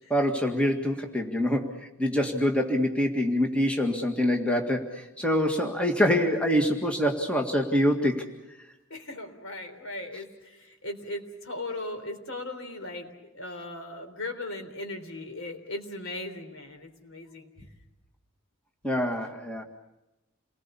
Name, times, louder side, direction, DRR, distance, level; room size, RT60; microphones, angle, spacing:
voice 1, 0.1-8.3 18.8-19.6, equal, 5° left, 2 dB, 1.9 m, -25 dB
voice 2, 8.9-17.5, left 2 dB, 70° left, 6 dB, 3.7 m, -38 dB
29.0 x 20.5 x 7.0 m, 0.99 s
head